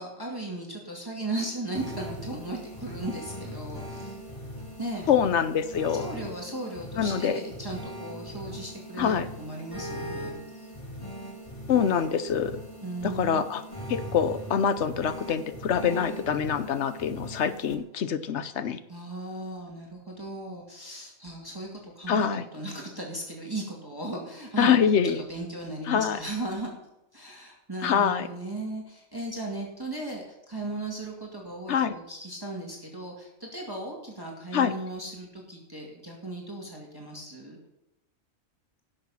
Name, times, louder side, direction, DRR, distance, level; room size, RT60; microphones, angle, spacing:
voice 1, 0.0-4.2 4.8-5.1 5.9-10.4 12.8-13.4 18.9-26.7 27.1-37.6, right 2 dB, 15° right, -1 dB, 2.2 m, -37 dB
sound 1, 1.7-17.7, equal, 25° left, 1.7 m, -40 dB
voice 2, 5.1-6.1 7.0-7.4 9.0-9.3 11.7-12.6 13.0-13.6 13.9-18.8 22.1-22.4 24.6-25.2 25.9-26.2 27.8-28.3 31.7-32.0 34.5-34.7, left 7 dB, 60° left, 12 dB, 1.1 m, -25 dB
16.5 x 6.8 x 5.6 m, 0.90 s
omnidirectional pair, 1.4 m